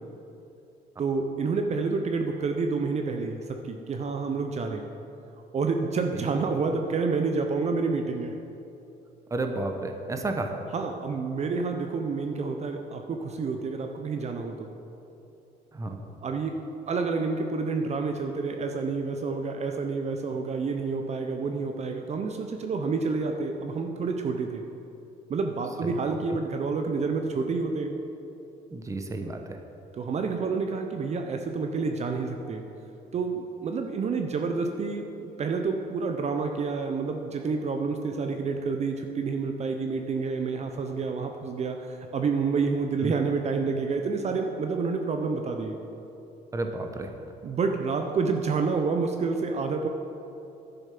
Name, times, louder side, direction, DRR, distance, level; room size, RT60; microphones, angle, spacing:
voice 1, 1.0-3.4 3.6-4.9 5.5-8.3 10.7-14.7 16.2-16.6 16.9-24.6 25.3-28.0 29.9-32.6 33.1-45.8 47.4-49.9, right 4 dB, 40° right, 4 dB, 0.8 m, -29 dB
voice 2, 9.3-10.6 15.7-16.0 25.8-26.0 26.3-26.4 28.7-29.6 43.0-43.1 46.5-47.1, right 2 dB, 20° right, 5 dB, 0.9 m, -32 dB
11.0 x 6.9 x 6.0 m, 2.9 s
cardioid pair, 110°, 17 cm